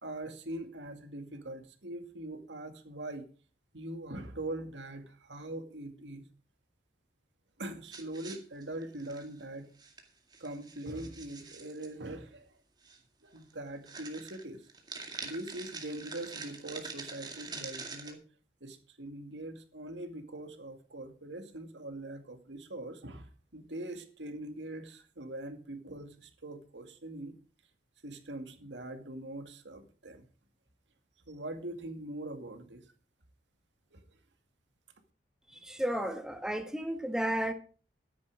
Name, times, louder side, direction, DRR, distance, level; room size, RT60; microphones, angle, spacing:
voice 1, 0.0-3.3 3.7-6.2 7.6-9.7 10.4-12.5 13.2-14.6 15.2-18.2 18.6-27.3 28.0-30.2 31.3-32.8 33.9-34.0, right 1 dB, 85° right, 2.3 m, -42 dB
sound 1, 7.8-9.4 9.8-10.0 10.3-11.9 12.8-13.0 13.4-13.5 13.9-18.1, right 4 dB, 25° right, 2.1 m, -45 dB
voice 2, 35.6-37.5, right 1 dB, 5° right, 1.4 m, -33 dB
13.5 x 10.0 x 4.8 m
head